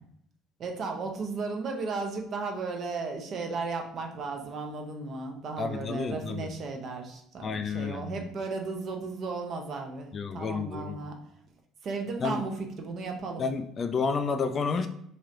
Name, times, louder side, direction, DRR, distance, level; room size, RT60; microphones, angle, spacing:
voice 1, 0.6-11.2 11.8-13.4, right 4 dB, 45° right, 3 dB, 0.6 m, -35 dB
voice 2, 5.6-6.5 7.4-8.3 10.1-11.0 12.2-12.4 13.4-14.9, left 5 dB, 35° left, 8 dB, 0.3 m, -30 dB
3.1 x 2.8 x 2.5 m, 0.72 s
figure-of-eight pair, 55°, 0 cm